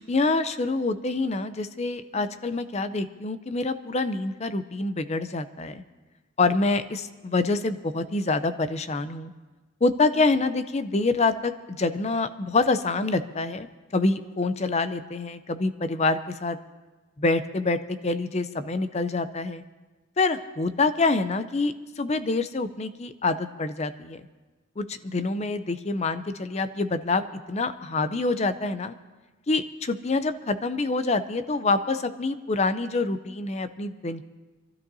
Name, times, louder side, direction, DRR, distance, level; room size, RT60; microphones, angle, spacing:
voice 1, 0.0-5.8 6.4-9.3 9.8-13.7 13.9-16.6 17.2-19.6 20.2-24.2 24.8-28.9 29.5-34.2, left 3 dB, 30° left, 11 dB, 0.5 m, -26 dB
27.0 x 12.5 x 2.7 m, 1.2 s
head